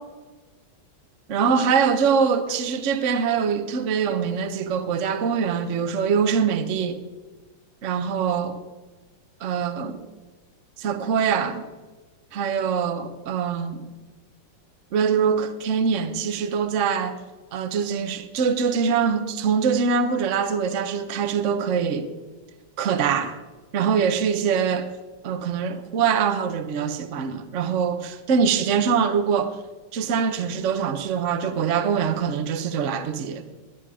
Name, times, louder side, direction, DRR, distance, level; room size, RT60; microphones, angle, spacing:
voice 1, 1.3-7.0 7.8-8.6 9.4-10.0 10.8-11.7 12.3-13.8 14.9-17.2 17.5-22.1 22.8-23.3 23.7-24.9 25.2-29.6 29.9-33.4, right 6 dB, 45° right, 1.1 m, -23 dB
21.5 x 9.3 x 5.0 m
omnidirectional pair, 2.2 m